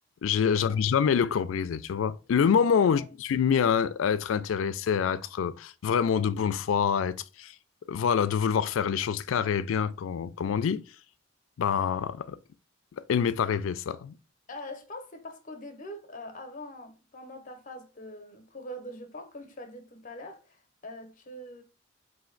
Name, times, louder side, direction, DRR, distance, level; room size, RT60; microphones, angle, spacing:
voice 1, 0.2-7.5 7.9-10.8 11.6-12.4 13.1-14.1, left 7 dB, 90° left, 0.3 m, -26 dB
voice 2, 14.5-21.6, left 1 dB, 45° left, 0.7 m, -43 dB
4.2 x 2.6 x 3.8 m
head